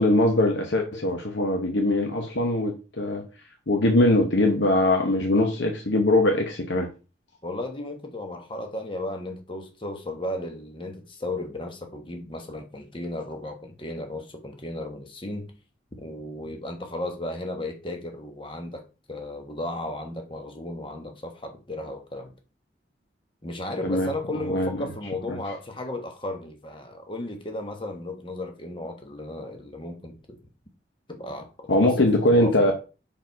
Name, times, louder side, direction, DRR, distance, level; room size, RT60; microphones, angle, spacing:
voice 1, 0.0-3.2 3.7-6.9 23.8-24.1 24.4-24.8 25.3-25.4 31.7-32.7, left 1 dB, 80° left, 1.0 m, -22 dB
voice 2, 7.4-15.5 16.0-18.8 19.1-22.3 23.4-30.4 31.1-32.7, left 1 dB, 25° left, 1.2 m, -35 dB
5.5 x 4.8 x 4.6 m
head